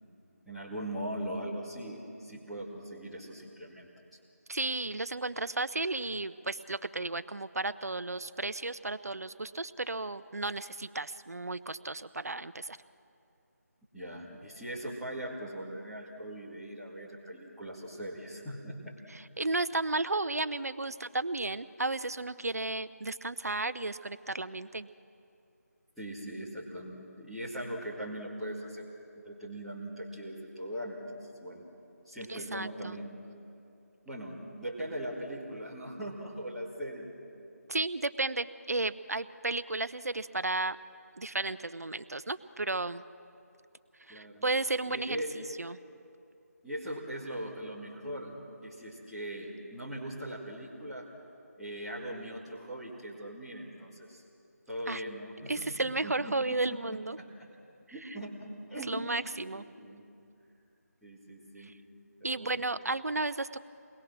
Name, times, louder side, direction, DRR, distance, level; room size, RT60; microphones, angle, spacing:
voice 1, 0.5-3.9 13.9-18.9 26.0-28.9 29.1-31.6 32.0-33.2 34.1-37.1 44.1-44.5 44.9-45.4 46.6-51.1 51.6-54.2 54.7-57.5 57.9-59.0 59.5-60.0 61.0-61.8 62.2-62.6, right 1 dB, ahead, -13 dB, 2.5 m, -40 dB
voice 2, 4.5-12.8 19.4-24.9 32.3-33.0 37.7-40.8 41.2-43.0 44.1-45.2 45.6-45.8 54.9-55.0 55.5-57.2 58.9-59.6 61.6-61.7 62.2-63.6, right 2 dB, 65° right, 13 dB, 0.8 m, -33 dB
28.5 x 21.5 x 6.2 m, 2.6 s
figure-of-eight pair, 160°, 9 cm